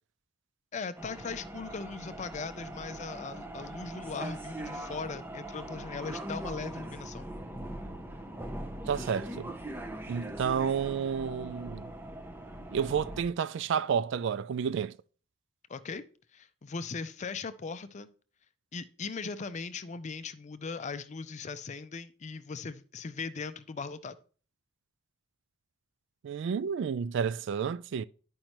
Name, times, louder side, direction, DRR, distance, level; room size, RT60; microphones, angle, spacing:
voice 1, 0.7-7.3 15.7-16.0 16.3-18.1 18.7-24.2, left 4 dB, 35° left, 0.4 m, -39 dB
sound 1, 1.0-13.2, right 1 dB, 10° right, 0.6 m, -41 dB
voice 2, 8.9-9.6 10.1-11.9 12.7-14.9 26.2-28.0, right 7 dB, 60° right, 0.3 m, -30 dB
10.0 x 5.3 x 3.0 m
head